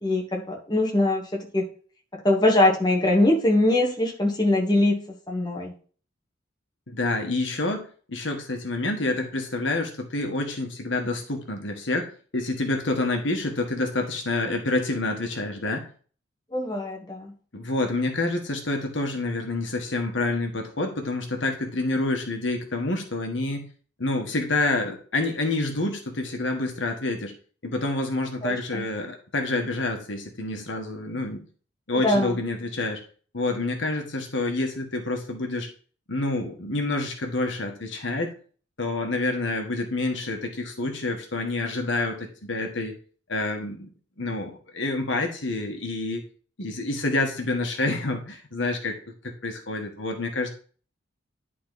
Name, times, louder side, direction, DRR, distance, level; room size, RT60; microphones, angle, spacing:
voice 1, 0.0-1.6 2.1-5.0 5.3-5.7 16.5-17.3 28.4-28.8 32.0-32.4, left 1 dB, 20° left, 0 dB, 1.4 m, -22 dB
voice 2, 6.9-15.9 17.5-23.7 24.0-27.3 27.6-31.4 31.9-33.0 33.3-35.7 36.1-38.3 38.8-42.9 43.3-43.9 44.2-46.2 46.6-49.0 49.2-50.5, left 2 dB, 65° left, 3 dB, 1.5 m, -28 dB
10.5 x 4.1 x 4.0 m, 0.42 s
head